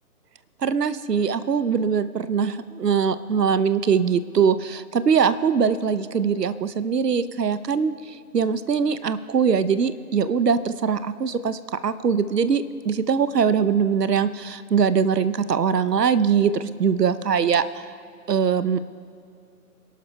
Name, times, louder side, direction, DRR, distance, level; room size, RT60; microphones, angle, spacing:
voice 1, 0.6-17.9 18.3-18.8, right 6 dB, 80° right, 14 dB, 0.8 m, -22 dB
25.5 x 12.0 x 2.2 m, 2.5 s
figure-of-eight pair, 145°, 47 cm